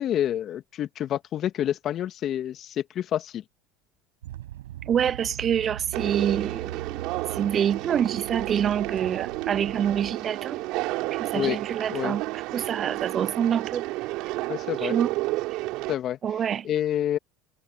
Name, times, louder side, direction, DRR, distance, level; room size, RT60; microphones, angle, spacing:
voice 1, 0.0-3.4 11.3-11.6 11.9-12.2 14.5-15.0 15.9-16.2 16.6-17.2, left 11 dB, 50° left, 2.2 m, -28 dB
sound 1, 4.2-10.1, right 14 dB, 85° right, 5.3 m, -40 dB
voice 2, 4.9-10.6 11.1-12.2 12.5-13.8 14.8-15.1 16.2-16.7, right 9 dB, 40° right, 0.5 m, -26 dB
Conversation, 5.9-15.9, right 20 dB, 65° right, 3.5 m, -31 dB
hypercardioid pair, 80°, 0 cm